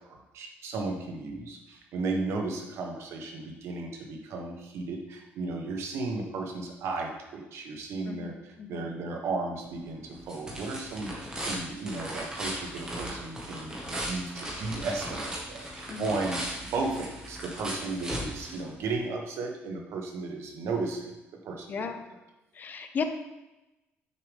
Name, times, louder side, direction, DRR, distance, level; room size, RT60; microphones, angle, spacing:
voice 1, 0.0-16.4 16.7-21.2 21.4-21.9, right 3 dB, 70° right, 2 dB, 1.2 m, -35 dB
voice 2, 8.0-8.9 15.9-16.2 21.7-22.0 22.5-23.0, left 6 dB, 40° left, 7 dB, 0.6 m, -35 dB
sound 1, 9.6-19.1, right 1 dB, 15° right, 1.6 m, -38 dB
6.5 x 5.2 x 3.5 m, 1.0 s
cardioid pair, 115°, 5 cm